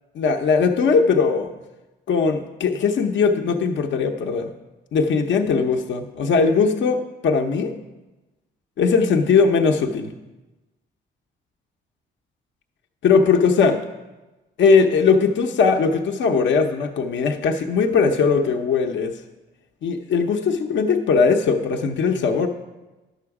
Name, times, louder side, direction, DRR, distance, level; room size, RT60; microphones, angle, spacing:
voice 1, 0.1-1.5 2.1-4.5 4.9-7.7 8.8-10.1 13.0-13.8 14.6-19.1 19.8-22.5, left 5 dB, 70° left, 3 dB, 0.8 m, -19 dB
10.5 x 7.0 x 4.8 m, 1.1 s
cardioid pair, 90°, 20 cm